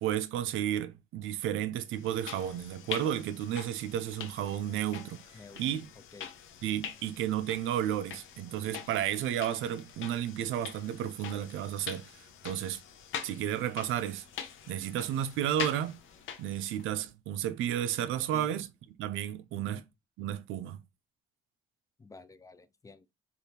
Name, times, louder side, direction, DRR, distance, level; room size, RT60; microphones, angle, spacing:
voice 1, 0.0-5.2 5.6-5.9 6.6-12.0 12.4-12.8 13.2-14.2 14.7-16.0 16.4-18.7 19.0-19.8 20.2-20.8, right 11 dB, 85° right, 0.4 m, -32 dB
Pasos Suaves M, 1.9-16.9, left 8 dB, 80° left, 0.6 m, -44 dB
voice 2, 18.3-18.6 19.5-19.8 22.0-23.0, left 3 dB, 15° left, 0.3 m, -51 dB
3.3 x 2.5 x 2.7 m
cardioid pair, 90°, 20 cm